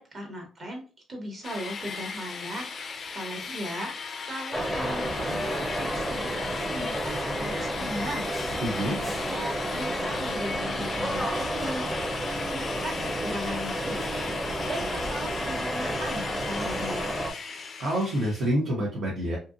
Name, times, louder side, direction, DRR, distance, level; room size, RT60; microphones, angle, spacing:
voice 1, 0.0-2.7 3.1-6.4 6.7-8.3 8.9-11.9 12.3-14.3 14.7-17.1, equal, 45° right, 1 dB, 1.2 m, -38 dB
sound 1, 1.4-18.5, left 5 dB, 45° left, 0.3 m, -37 dB
sound 2, 4.5-17.3, equal, 5° right, 0.6 m, -31 dB
voice 2, 8.6-9.0 17.5-19.4, equal, 70° right, -4 dB, 0.9 m, -28 dB
2.8 x 2.5 x 2.5 m, 0.36 s
cardioid pair, 90°, 0 cm